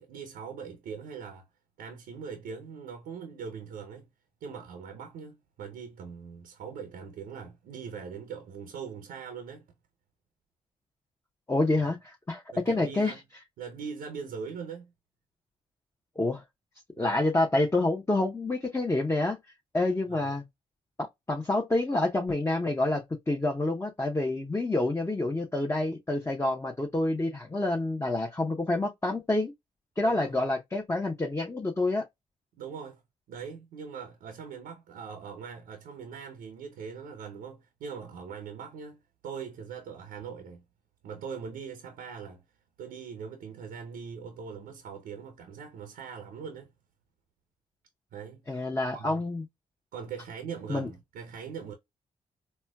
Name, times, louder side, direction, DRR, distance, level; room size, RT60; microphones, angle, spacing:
voice 1, 0.0-1.5 1.8-4.1 4.4-9.7 11.8-11.9 12.5-13.2 13.6-14.9 17.0-17.3 20.1-20.4 30.0-30.4 32.6-33.0 33.3-40.6 41.0-42.4 42.8-46.7 48.1-48.7 48.9-49.2 49.9-51.7, right 6 dB, 75° right, 0.6 m, -41 dB
voice 2, 11.5-13.2 16.2-16.4 17.0-19.4 19.7-20.4 21.3-29.5 30.0-32.0 48.5-49.4 50.7-50.9, left 2 dB, 15° left, 0.7 m, -28 dB
4.2 x 2.1 x 2.2 m
hypercardioid pair, 45°, 15 cm